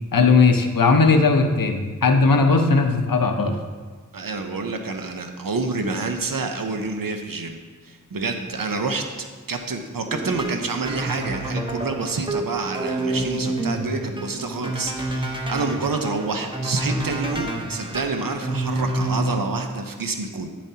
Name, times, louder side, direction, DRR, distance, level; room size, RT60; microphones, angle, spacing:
voice 1, 0.1-3.6, left 4 dB, 90° left, 5 dB, 0.7 m, -17 dB
voice 2, 4.1-7.6 7.8-20.5, right 3 dB, 85° right, 5 dB, 0.7 m, -28 dB
sound 1, 10.1-19.5, right 1 dB, 15° right, 0.8 m, -28 dB
9.4 x 7.1 x 2.8 m, 1.5 s
wide cardioid pair, 55°, 33 cm